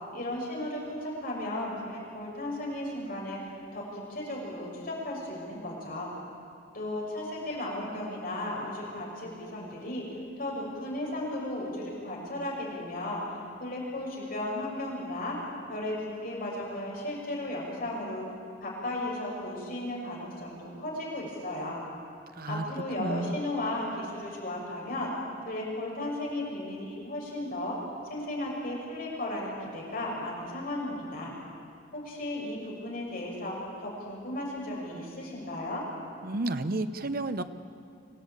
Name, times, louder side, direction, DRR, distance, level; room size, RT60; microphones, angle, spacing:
voice 1, 0.1-3.4 3.7-6.1 6.7-10.1 10.4-13.2 13.6-15.4 15.7-18.3 18.6-21.8 22.5-25.1 25.4-31.3 31.9-35.9, left 1 dB, 50° left, -3 dB, 6.4 m, -35 dB
voice 2, 23.0-23.4 36.2-37.4, right 2 dB, 50° right, 10 dB, 0.9 m, -31 dB
25.5 x 16.5 x 8.9 m, 2.3 s
head